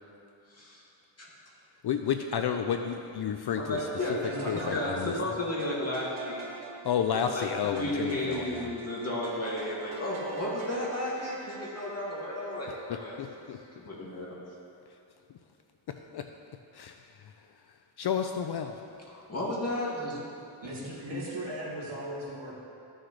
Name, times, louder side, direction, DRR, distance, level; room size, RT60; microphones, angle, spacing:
voice 1, 0.5-0.8 1.2-1.3 3.5-4.3 4.7-4.9 5.2-6.5 7.1-7.5 7.7-13.1 13.8-14.3 19.1-20.2, left 1 dB, 30° left, -6 dB, 2.4 m, -33 dB
voice 2, 1.8-4.2 4.5-5.1 6.8-8.7 12.9-13.6 14.9-15.0 15.9-16.3 16.7-18.8, left 8 dB, 55° left, 6 dB, 0.5 m, -32 dB
sound 1, 3.8-14.0, right 4 dB, 90° right, 1.0 m, -46 dB
voice 3, 4.2-5.3 20.6-22.5, right 1 dB, 60° right, -5 dB, 2.2 m, -37 dB
14.5 x 6.3 x 3.2 m, 2.6 s
cardioid pair, 95°, 48 cm